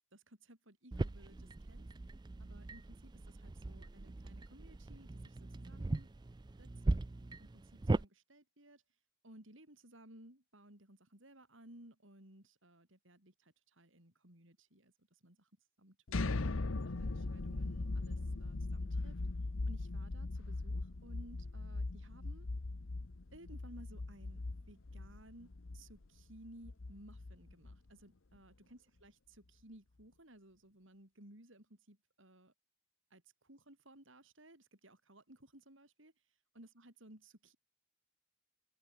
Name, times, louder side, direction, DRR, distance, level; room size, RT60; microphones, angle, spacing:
voice 1, 0.1-1.9 2.4-6.1 6.6-7.0 7.4-8.8 9.2-15.5 15.8-16.4 16.8-19.2 19.7-22.5 23.3-32.5 33.1-36.1 36.6-37.6, right 1 dB, 70° right, 7.3 m, -59 dB
sound 1, 0.9-8.0, right 2 dB, 20° right, 0.4 m, -39 dB
sound 2, 16.1-27.9, left 2 dB, 80° left, 1.0 m, -39 dB
open air
head